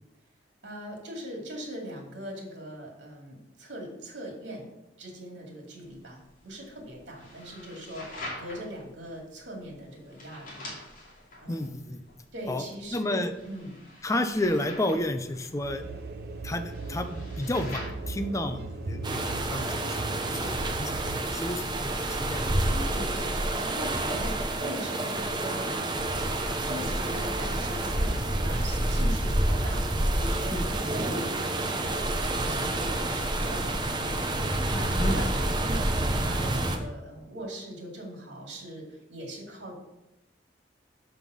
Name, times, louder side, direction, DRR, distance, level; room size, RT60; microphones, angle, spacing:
voice 1, 0.6-4.7 5.0-10.8 11.4-11.6 12.3-13.8 22.9-26.3 26.6-39.7, right 1 dB, 85° right, 0 dB, 2.3 m, -41 dB
sound 1, 5.8-23.3, left 1 dB, 50° left, 2.7 m, -46 dB
voice 2, 11.5-12.0 12.5-12.6 12.9-13.3 14.0-15.8 16.4-22.5 30.5-30.7 35.0-35.5, left 1 dB, 20° left, 7 dB, 0.5 m, -31 dB
sound 2, 15.6-21.2, right 2 dB, 60° right, 0.8 m, -38 dB
sound 3, 19.0-36.8, right 1 dB, 25° right, 0.7 m, -28 dB
5.7 x 5.4 x 6.1 m, 0.93 s
head